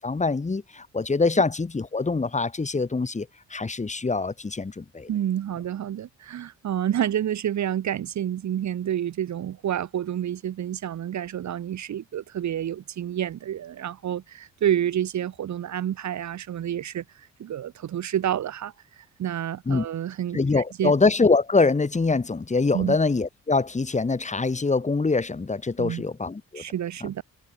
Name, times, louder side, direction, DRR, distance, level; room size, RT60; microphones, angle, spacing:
voice 1, 0.0-5.1 19.7-19.8 20.3-26.6, left 3 dB, 25° left, 3.3 m, -24 dB
voice 2, 5.1-20.9 22.7-23.0 25.8-26.0 26.5-27.2, right 10 dB, 65° right, 6.6 m, -29 dB
cardioid pair, 90°, 30 cm